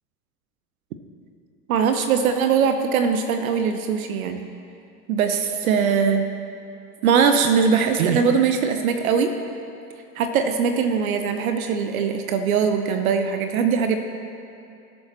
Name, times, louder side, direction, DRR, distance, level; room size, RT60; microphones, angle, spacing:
voice 1, 1.7-4.5 5.1-6.3 7.0-9.3 10.2-14.0, right 6 dB, 55° right, 7 dB, 0.8 m, -21 dB
18.5 x 7.2 x 3.0 m, 2.7 s
figure-of-eight pair, 90°, 50 cm